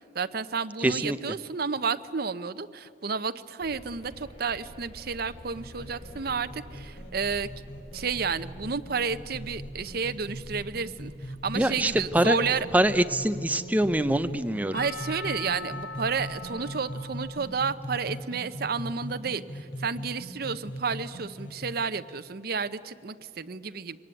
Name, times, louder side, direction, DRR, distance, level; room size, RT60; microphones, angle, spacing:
voice 1, 0.1-7.5 7.9-12.7 14.7-24.0, right 5 dB, 55° right, 12 dB, 0.8 m, -31 dB
voice 2, 0.8-1.2 11.5-12.4 12.7-14.8, right 1 dB, 10° right, 10 dB, 0.7 m, -24 dB
sound 1, 3.6-17.7, equal, 35° left, 6.0 m, -49 dB
sound 2, 5.5-21.7, equal, 80° left, 3.0 m, -40 dB
Percussion / Church bell, 14.7-18.6, left 3 dB, 55° left, 4.5 m, -42 dB
23.5 x 18.5 x 9.2 m, 2.4 s
head